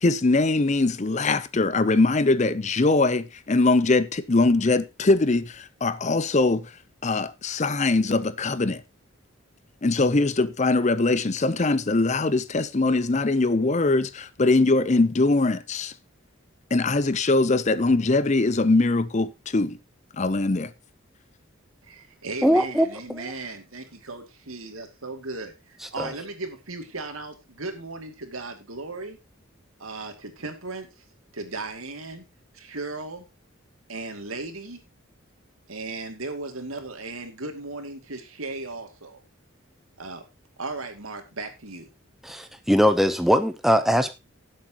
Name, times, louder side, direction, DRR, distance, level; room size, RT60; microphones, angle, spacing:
voice 1, 0.0-6.7 7.0-8.8 9.8-15.9 16.7-19.8 20.1-20.7, left 3 dB, 35° left, 0.6 m, -22 dB
voice 2, 21.8-29.2 29.8-31.0 31.3-32.3 32.5-33.2 33.9-34.8 35.7-39.2 40.0-40.2 40.6-41.9, right 3 dB, 85° right, 2.6 m, -36 dB
voice 3, 22.4-22.9 23.1-23.3 26.0-26.1 42.2-44.1, equal, ahead, 0.7 m, -21 dB
17.5 x 7.7 x 3.0 m
head